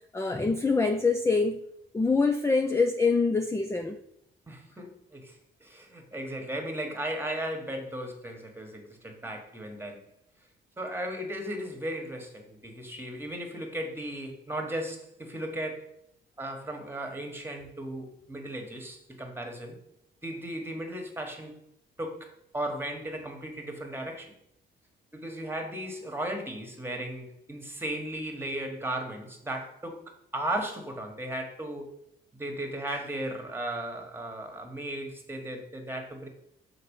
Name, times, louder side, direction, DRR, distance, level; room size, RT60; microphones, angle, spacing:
voice 1, 0.1-1.6 1.9-4.0, left 4 dB, 15° left, 6 dB, 0.5 m, -25 dB
voice 2, 4.5-10.1 10.8-15.9 16.4-19.8 20.2-21.6 22.0-24.3 25.1-31.9 32.4-36.3, right 1 dB, 10° right, 4 dB, 1.5 m, -36 dB
5.9 x 4.0 x 5.5 m, 0.76 s
cardioid pair, 90°, 20 cm